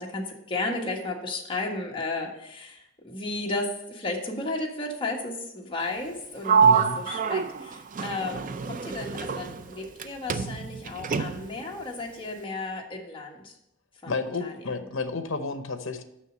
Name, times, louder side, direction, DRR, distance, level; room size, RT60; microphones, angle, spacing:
voice 1, 0.0-13.5 14.0-14.5, left 2 dB, 25° left, 0 dB, 1.4 m, -34 dB
Sliding door, 6.4-10.0 10.3-11.6, right 6 dB, 40° right, 0.4 m, -25 dB
voice 2, 6.6-7.0 14.1-16.0, left 4 dB, 65° left, 9 dB, 0.9 m, -31 dB
6.5 x 6.2 x 6.3 m, 0.83 s
head